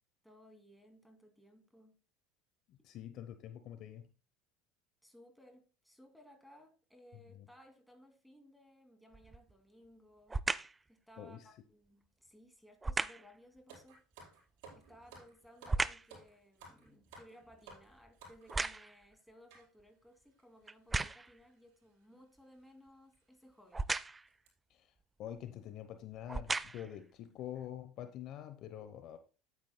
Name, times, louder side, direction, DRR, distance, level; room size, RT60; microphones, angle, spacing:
voice 1, 0.2-2.0 5.0-10.4 10.9-14.0 14.7-23.9, equal, ahead, 2.4 m, -60 dB
voice 2, 2.7-4.1 7.4-7.5 11.2-11.5 24.7-24.9 25.2-29.2, left 11 dB, 55° left, 0.8 m, -46 dB
sound 1, 9.1-9.5 10.3-10.8 12.8-13.3 14.7-16.2 16.6-19.1 19.8-19.9 20.7-21.4 23.7-24.3 25.3-25.5 26.2-27.0 27.6-27.7, right 3 dB, 15° right, 0.4 m, -37 dB
sound 2, 13.7-18.7 19.5-19.7 20.4-20.5 20.7-20.9 21.8-22.0 22.5-22.6 23.1-23.2 23.7-23.9 24.3-24.5, right 3 dB, 75° right, 4.8 m, -56 dB
10.5 x 9.4 x 2.2 m
supercardioid pair, 95°, 0 cm